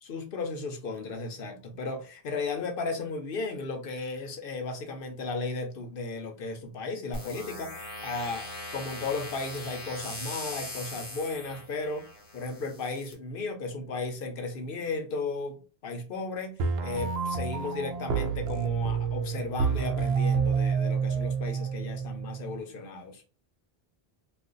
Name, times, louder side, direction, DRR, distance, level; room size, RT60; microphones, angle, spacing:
voice 1, 0.1-12.1 12.3-23.2, left 3 dB, 65° left, 0.8 m, -35 dB
sound 1, 7.1-13.1, left 2 dB, 35° left, 0.9 m, -41 dB
sound 2, 16.6-22.6, right 6 dB, 80° right, 0.8 m, -29 dB
2.5 x 2.4 x 3.7 m
omnidirectional pair, 1.0 m